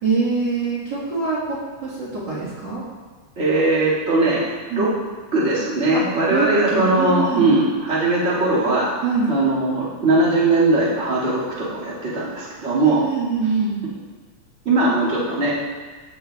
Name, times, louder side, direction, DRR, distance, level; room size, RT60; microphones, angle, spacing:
voice 1, 0.0-2.8 4.7-4.9 5.9-6.0 6.3-6.5 6.7-7.5 9.0-9.3 12.8-13.8, right 4 dB, 75° right, -8 dB, 1.0 m, -23 dB
voice 2, 3.3-4.9 5.3-8.9 9.3-13.0 14.6-15.7, right 2 dB, 35° right, -8 dB, 1.1 m, -20 dB
14.0 x 6.6 x 2.3 m, 1.4 s
omnidirectional pair, 4.6 m